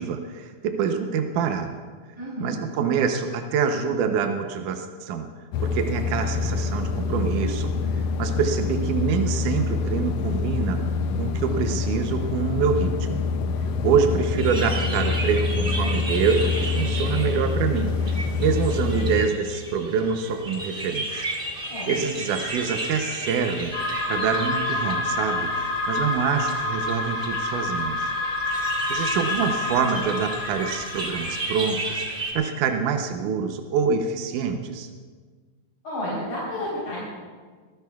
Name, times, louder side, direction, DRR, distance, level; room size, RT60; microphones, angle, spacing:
voice 1, 0.0-1.8 2.4-5.3 5.6-10.8 11.2-13.3 13.8-21.3 21.9-28.1 28.9-32.0 32.3-34.9, right 6 dB, 80° right, 5 dB, 2.3 m, -26 dB
voice 2, 2.2-2.6 21.7-21.9 35.8-37.0, left 1 dB, 60° left, -8 dB, 5.0 m, -31 dB
sound 1, 5.5-19.3, left 4 dB, 90° left, 1.5 m, -26 dB
sound 2, 14.4-32.3, right 1 dB, 20° right, 1.6 m, -34 dB
sound 3, 23.7-31.4, left 2 dB, 40° left, 3.5 m, -28 dB
23.5 x 15.0 x 2.3 m, 1.5 s
omnidirectional pair, 3.7 m